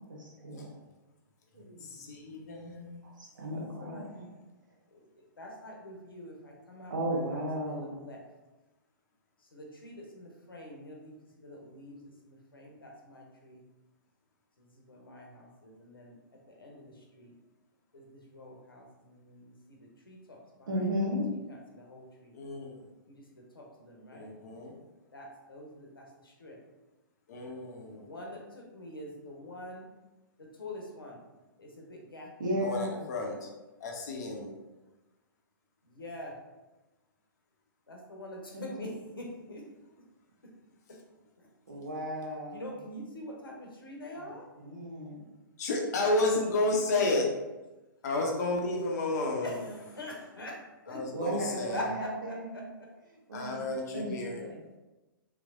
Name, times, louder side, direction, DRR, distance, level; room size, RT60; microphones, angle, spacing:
voice 1, 0.1-0.8 1.5-1.9 3.0-4.2 6.9-7.9 20.7-21.3 32.4-33.1 38.5-38.6 41.7-42.7 44.1-45.1 51.1-52.6 53.3-53.6 53.9-54.6, right 1 dB, 60° right, -2 dB, 1.0 m, -35 dB
voice 2, 1.8-3.0 22.3-22.7 24.1-24.7 27.3-28.0 32.6-33.5 33.8-34.5 45.6-47.3 48.0-49.5 50.9-51.8 53.3-54.4, left 2 dB, 50° left, 1 dB, 0.7 m, -31 dB
voice 3, 5.4-8.2 9.5-11.1 11.4-12.0 12.2-13.6 14.6-16.2 16.6-17.3 17.9-21.1 21.5-22.3 23.1-23.2 23.5-24.3 25.1-26.6 28.0-29.9 30.6-31.2 31.6-32.5 35.8-36.3 37.9-39.6 40.9-41.0 41.4-41.5 42.5-44.4 46.9-47.2 49.4-50.6 50.9-51.0 51.5-52.6, left 1 dB, 75° left, 0 dB, 0.8 m, -45 dB
3.3 x 3.1 x 2.5 m, 1.1 s
figure-of-eight pair, 115°, 12 cm